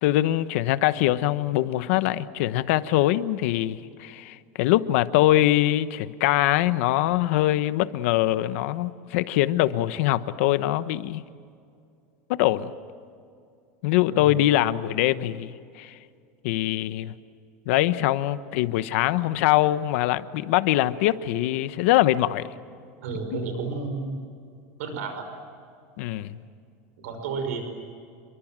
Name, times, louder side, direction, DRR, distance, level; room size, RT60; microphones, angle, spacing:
voice 1, 0.0-11.2 12.3-12.7 13.8-16.0 16.4-17.1 17.7-22.5 23.3-23.4 26.0-26.4, left 14 dB, 65° left, 1.1 m, -23 dB
voice 2, 23.0-24.2 24.8-25.2 27.0-27.7, right 4 dB, 90° right, 5.6 m, -31 dB
29.5 x 23.0 x 7.6 m
supercardioid pair, 170°, 8 cm